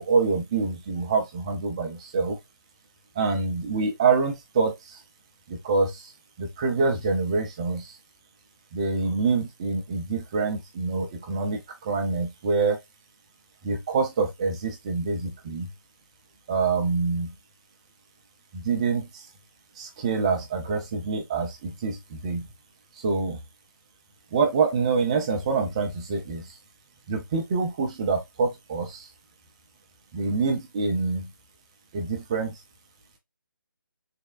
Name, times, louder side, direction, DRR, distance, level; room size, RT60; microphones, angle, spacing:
voice 1, 0.0-2.4 3.2-5.0 5.5-6.1 6.4-7.9 8.7-12.8 13.6-15.7 16.5-17.3 18.5-19.1 19.8-22.4 23.0-23.4 24.3-26.5 27.1-29.1 30.1-31.3 31.9-32.6, right 4 dB, 15° right, 0.4 m, -26 dB
3.4 x 3.1 x 2.3 m
figure-of-eight pair, 160°, 12 cm